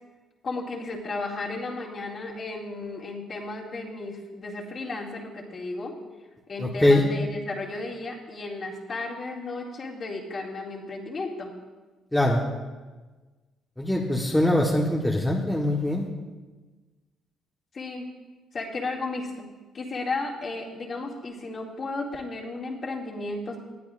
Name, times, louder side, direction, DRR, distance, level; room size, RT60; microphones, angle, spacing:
voice 1, 0.4-5.9 6.5-11.5 17.7-18.1 18.5-23.6, left 3 dB, 40° left, -2 dB, 2.3 m, -34 dB
voice 2, 6.6-7.0 12.1-12.4 13.8-16.1, left 1 dB, 5° left, -3 dB, 1.2 m, -22 dB
19.5 x 11.5 x 2.5 m, 1.3 s
cardioid pair, 115°, 0 cm